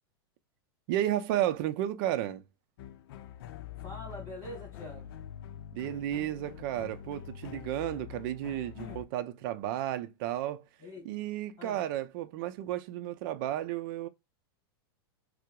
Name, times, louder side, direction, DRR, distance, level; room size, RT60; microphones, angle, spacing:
voice 1, 0.9-2.4 5.7-10.6 11.0-14.1, right 12 dB, 55° right, 0.5 m, -33 dB
sound 1, 2.8-9.0, left 10 dB, 65° left, 0.5 m, -45 dB
voice 2, 3.8-5.1 8.8-9.0 10.8-11.1 11.6-11.8, left 1 dB, 25° left, 2.1 m, -44 dB
4.4 x 2.0 x 2.2 m
hypercardioid pair, 120°, 13 cm